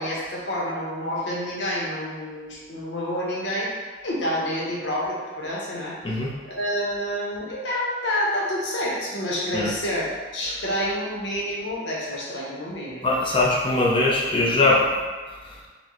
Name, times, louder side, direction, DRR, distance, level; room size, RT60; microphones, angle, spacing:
voice 1, 0.0-13.2, equal, 80° left, -5 dB, 0.9 m, -28 dB
voice 2, 13.0-14.8, left 2 dB, 30° left, -5 dB, 0.6 m, -21 dB
4.1 x 2.1 x 3.0 m, 1.4 s
head